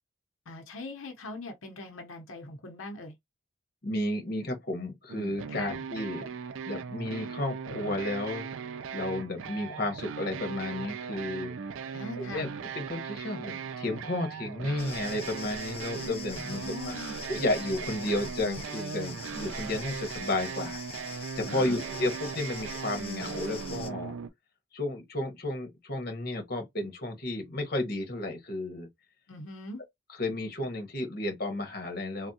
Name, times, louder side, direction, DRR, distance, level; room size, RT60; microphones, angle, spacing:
voice 1, 0.5-3.1 5.5-5.8 11.9-12.5 16.4-17.2 21.5-21.8 29.3-29.8, left 2 dB, 90° left, 0.8 m, -41 dB
voice 2, 3.8-6.3 6.6-11.5 11.8-12.5 12.7-24.1 24.7-28.9 30.1-32.3, left 1 dB, 50° left, 1.1 m, -33 dB
sound 1, 5.1-24.3, right 6 dB, 80° right, 0.4 m, -38 dB
sound 2, 14.8-23.9, left 5 dB, 30° left, 0.5 m, -44 dB
3.5 x 2.2 x 2.7 m
head